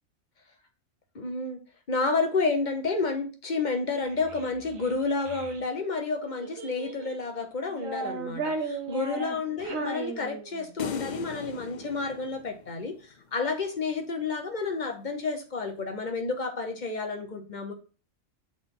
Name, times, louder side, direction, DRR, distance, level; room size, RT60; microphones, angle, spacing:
voice 1, 1.1-1.6 1.9-12.9 13.3-17.7, left 4 dB, 40° left, 5 dB, 1.0 m, -30 dB
Child speech kid speaking, 3.9-5.6 6.4-7.2 7.7-10.8, right 3 dB, 80° right, 1.5 m, -36 dB
sound 1, 10.8-13.2, left 7 dB, 60° left, 0.5 m, -38 dB
6.2 x 4.0 x 3.8 m, 0.35 s
omnidirectional pair, 1.4 m